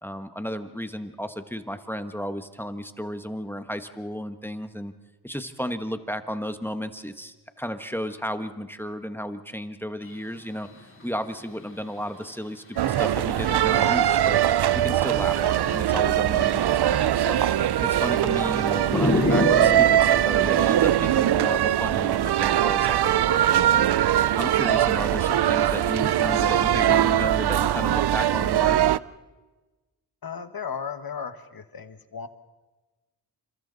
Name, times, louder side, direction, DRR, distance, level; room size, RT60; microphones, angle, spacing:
voice 1, 0.0-4.9 5.2-10.7 11.0-14.4 14.7-17.4 17.8-23.9 24.4-28.8, equal, 5° left, 9 dB, 1.4 m, -33 dB
sound 1, 10.0-10.1 10.4-12.2 12.7-14.3 14.9-20.3, left 2 dB, 30° left, 3.7 m, -30 dB
sound 2, 12.8-29.0, right 11 dB, 80° right, 0.6 m, -21 dB
voice 2, 30.2-32.3, left 6 dB, 60° left, 9 dB, 1.6 m, -35 dB
29.0 x 26.5 x 4.1 m, 1.2 s
cardioid pair, 70°, 39 cm